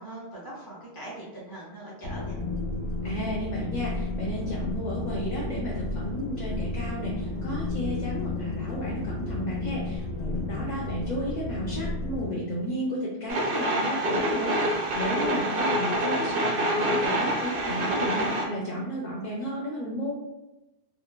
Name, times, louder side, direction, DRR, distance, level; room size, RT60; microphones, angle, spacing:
voice 1, 0.0-2.4 15.1-15.6, right 1 dB, 25° left, -5 dB, 0.8 m, -41 dB
sound 1, 2.0-12.3, left 2 dB, 75° left, 1.0 m, -32 dB
voice 2, 3.0-20.1, equal, 55° left, -4 dB, 0.5 m, -33 dB
sound 2, 13.3-18.5, right 1 dB, 60° right, 0.7 m, -26 dB
2.9 x 2.1 x 2.2 m, 0.95 s
omnidirectional pair, 1.1 m